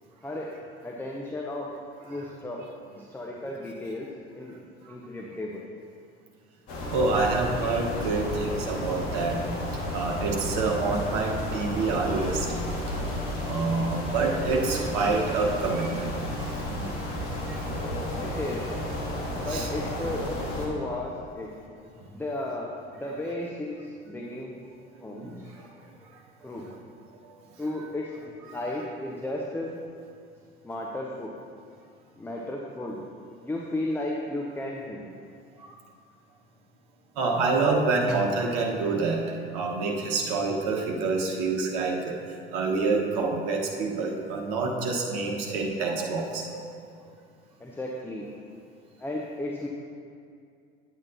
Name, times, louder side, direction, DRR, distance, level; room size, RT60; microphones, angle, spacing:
voice 1, 0.2-0.6 0.8-1.7 2.0-2.6 2.9-4.1 4.3-4.5 4.9-5.7 18.2-18.7 19.4-21.5 22.1-22.7 23.0-24.6 25.0-25.3 26.4-26.7 27.6-28.1 28.4-29.8 30.6-31.3 32.1-33.0 33.4-35.1 47.6-48.3 49.0-49.7, left 1 dB, 5° left, -1 dB, 0.7 m, -34 dB
sound 1, 6.7-20.7, left 1 dB, 40° left, 1.9 m, -32 dB
voice 2, 6.9-9.4 9.9-12.5 13.4-16.1 16.7-16.8 17.5-17.6 19.5-19.7 25.2-25.3 37.2-39.2 39.5-42.1 42.5-46.6, right 3 dB, 55° right, 0 dB, 1.3 m, -27 dB
10.0 x 8.6 x 2.8 m, 2.3 s
figure-of-eight pair, 70°, 34 cm